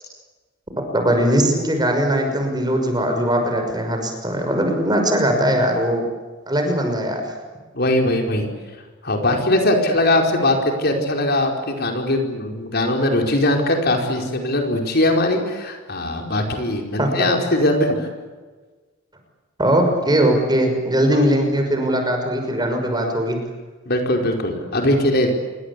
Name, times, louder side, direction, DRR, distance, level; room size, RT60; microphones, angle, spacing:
voice 1, 0.9-6.0 6.5-7.2 17.0-17.1 19.6-23.4, right 1 dB, 20° right, 4 dB, 6.0 m, -20 dB
voice 2, 7.7-8.5 9.0-18.1 21.1-21.2 23.9-25.3, left 1 dB, 50° left, 3 dB, 4.9 m, -20 dB
27.5 x 24.5 x 8.5 m, 1.4 s
head